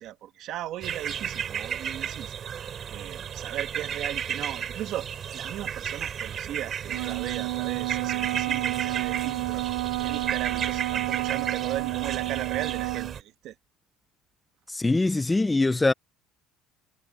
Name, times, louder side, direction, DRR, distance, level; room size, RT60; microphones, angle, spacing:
voice 1, 0.0-9.7 10.0-13.5, right 13 dB, 50° right, 1.9 m, -37 dB
sound 1, 0.8-13.2, right 8 dB, 30° right, 3.2 m, -33 dB
Wind instrument woodwind instrument, 6.9-13.2, right 22 dB, 85° right, 0.7 m, -30 dB
voice 2, 14.7-15.9, left 2 dB, 10° left, 0.5 m, -23 dB
cardioid pair, 170°, 0 cm